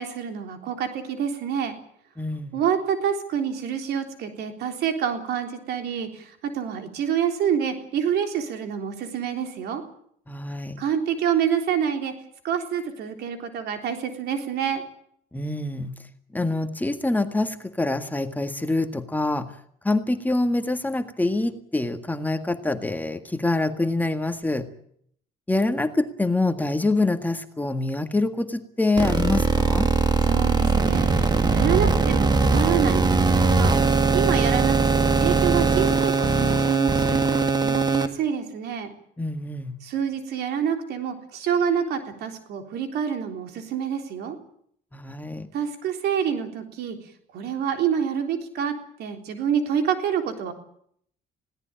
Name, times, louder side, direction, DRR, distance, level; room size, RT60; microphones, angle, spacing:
voice 1, 0.0-1.8 2.5-9.8 10.8-12.1 12.4-14.8 30.2-33.8 34.1-38.9 39.8-44.4 45.5-47.0 47.3-48.7 49.0-50.5, right 8 dB, 75° right, 6 dB, 3.7 m, -27 dB
voice 2, 2.2-2.6 10.3-10.8 15.3-15.9 16.3-19.5 19.8-24.7 25.5-29.9 39.2-39.7 44.9-45.5, left 2 dB, 10° left, 7 dB, 1.8 m, -25 dB
sound 1, 29.0-38.1, right 4 dB, 25° right, 1.7 m, -20 dB
20.5 x 17.5 x 8.9 m, 0.66 s
cardioid pair, 110°, 17 cm